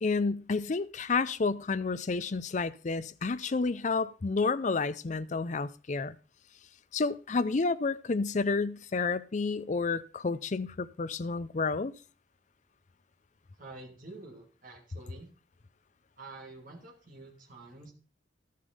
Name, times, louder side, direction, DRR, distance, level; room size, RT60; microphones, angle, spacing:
voice 1, 0.0-6.2 6.9-11.9, left 4 dB, 40° left, 0.5 m, -30 dB
voice 2, 13.6-15.3 16.2-17.9, right 2 dB, 45° right, 2.6 m, -48 dB
12.5 x 6.6 x 5.2 m
head